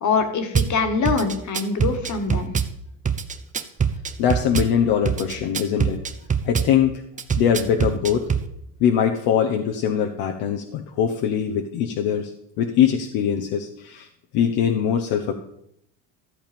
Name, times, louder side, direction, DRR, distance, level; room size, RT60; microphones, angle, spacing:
voice 1, 0.0-2.5, left 5 dB, 45° left, 7 dB, 1.9 m, -23 dB
Drum kit / Bass drum, 0.5-0.7 1.0-2.7 3.0-4.7 5.0-6.7 7.2-8.5, right 6 dB, 20° right, 0.7 m, -23 dB
voice 2, 4.2-6.0 6.4-7.0 7.4-8.3 8.8-12.3 12.6-14.1 14.3-15.3, left 8 dB, 70° left, 3 dB, 1.1 m, -22 dB
13.5 x 7.2 x 5.3 m, 0.76 s
supercardioid pair, 105°, 39 cm